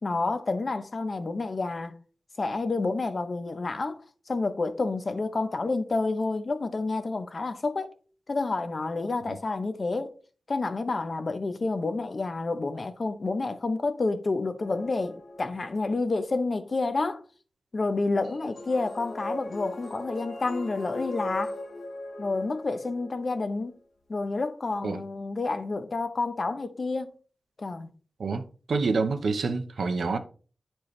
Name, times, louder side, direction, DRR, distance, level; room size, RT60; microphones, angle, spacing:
voice 1, 0.0-1.9 2.4-4.0 4.3-7.9 8.3-10.1 10.5-17.2 17.7-21.5 22.2-23.7 24.1-27.1 27.6-27.9, left 3 dB, 45° left, 0.7 m, -29 dB
sound 1, 14.6-15.9 18.2-23.5, left 2 dB, 90° left, 1.6 m, -39 dB
voice 2, 28.7-30.2, right 4 dB, 90° right, 0.8 m, -27 dB
10.0 x 4.5 x 3.2 m
wide cardioid pair, 120°, 0 cm